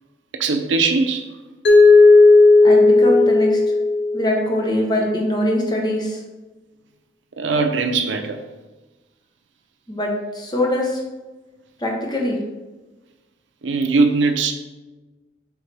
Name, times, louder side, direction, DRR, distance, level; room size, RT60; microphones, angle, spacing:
voice 1, 0.4-1.3 7.4-8.4 13.6-14.5, right 4 dB, 85° right, 0.6 m, -20 dB
Mallet percussion, 1.6-4.5, left 3 dB, 65° left, 0.7 m, -12 dB
voice 2, 2.6-3.7 4.1-6.2 9.9-11.0 11.8-12.4, left 1 dB, 20° left, 1.0 m, -22 dB
8.0 x 3.9 x 3.4 m
head